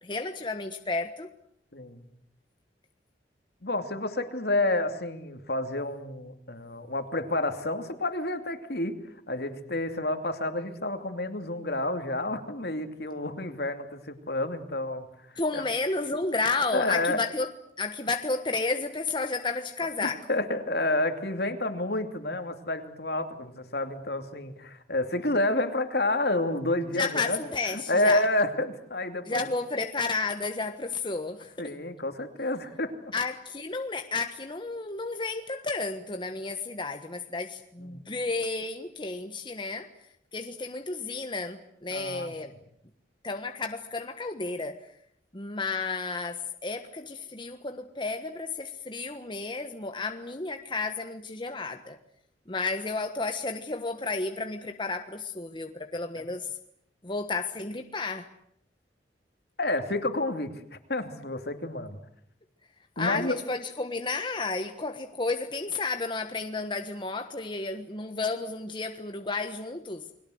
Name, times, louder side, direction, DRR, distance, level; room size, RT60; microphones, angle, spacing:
voice 1, 0.0-1.3 15.4-17.5 17.8-20.2 26.9-28.2 29.3-31.7 33.1-39.9 40.3-42.5 43.2-44.9 45.3-52.0 52.5-56.6 57.0-58.3 63.0-70.1, left 3 dB, 30° left, 1.3 m, -32 dB
voice 2, 1.7-2.1 3.6-9.0 9.3-15.1 15.5-15.6 16.7-17.2 20.0-27.4 27.7-29.4 31.6-32.9 37.8-38.0 41.9-42.3 56.2-56.3 59.6-60.5 60.9-62.0 63.0-63.3, left 2 dB, 60° left, 2.7 m, -29 dB
29.5 x 21.5 x 7.9 m
head